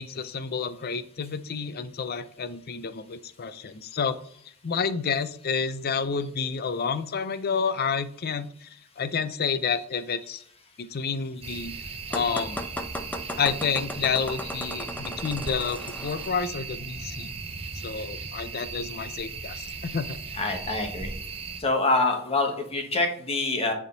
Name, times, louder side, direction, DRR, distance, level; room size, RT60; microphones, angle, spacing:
voice 1, 0.0-4.2 4.6-8.7 9.0-10.4 10.8-11.7 12.1-12.7 13.4-17.3 17.7-20.2, left 6 dB, 45° left, 12 dB, 0.5 m, -29 dB
sound 1, 11.4-21.6, right 4 dB, 25° right, 0.7 m, -37 dB
sound 2, 12.1-16.3, left 1 dB, 10° left, 0.6 m, -36 dB
voice 2, 20.4-21.1 21.6-23.7, left 2 dB, 30° left, 3 dB, 1.4 m, -25 dB
9.1 x 3.6 x 4.0 m, 0.63 s
head